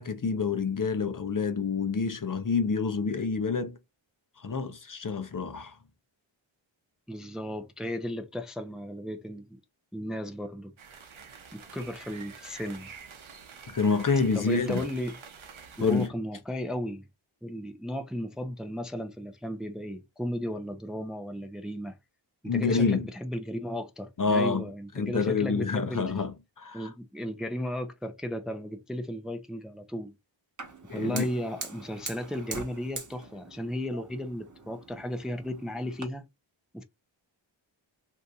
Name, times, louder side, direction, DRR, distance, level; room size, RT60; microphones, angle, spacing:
voice 1, 0.0-3.8 4.4-5.8 13.7-14.8 15.8-16.1 22.4-23.1 24.2-24.6 25.0-26.9 30.9-31.3, left 4 dB, 40° left, 0.7 m, -27 dB
voice 2, 7.1-9.6 9.9-10.7 11.5-12.9 14.4-15.2 15.8-17.1 17.4-22.0 22.4-26.0 26.7-30.1 30.9-36.2 36.7-36.8, equal, ahead, 0.5 m, -35 dB
sound 1, 10.8-16.1, right 6 dB, 70° right, 0.8 m, -47 dB
Fire, 30.6-36.0, right 3 dB, 40° right, 1.2 m, -43 dB
2.8 x 2.6 x 3.5 m
wide cardioid pair, 65°, 49 cm